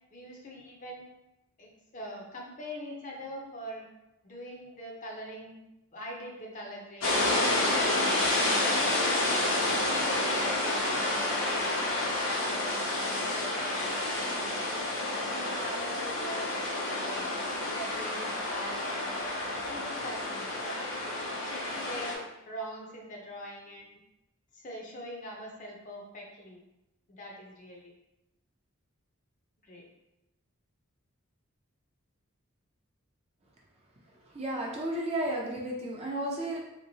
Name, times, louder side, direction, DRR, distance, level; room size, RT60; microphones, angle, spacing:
voice 1, 0.1-1.1 1.6-3.9 4.2-5.6 5.9-11.6 12.0-13.8 14.2-16.5 16.9-17.3 17.6-19.0 19.7-21.0 21.4-23.9 24.5-26.6 27.1-27.9 29.6-29.9, equal, 35° left, -1 dB, 0.6 m, -43 dB
sound 1, 7.0-22.1, left 2 dB, 75° left, 0.9 m, -29 dB
voice 2, 34.2-36.6, right 1 dB, 30° right, -2 dB, 0.5 m, -33 dB
3.6 x 2.9 x 2.7 m, 0.92 s
head